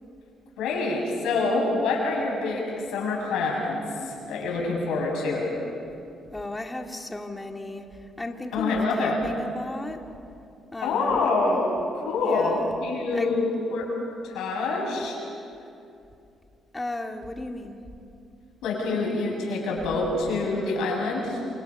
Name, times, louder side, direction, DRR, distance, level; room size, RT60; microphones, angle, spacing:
voice 1, 0.6-5.5 8.5-9.2 10.8-13.9 14.2-15.2 18.6-21.4, left 3 dB, 90° left, -2 dB, 7.7 m, -26 dB
voice 2, 6.3-10.1 10.7-11.3 12.0-12.7 13.1-13.4 16.7-17.8, left 2 dB, 15° left, 3 dB, 2.3 m, -35 dB
28.5 x 28.0 x 5.6 m, 2.6 s
cardioid pair, 90°, 0 cm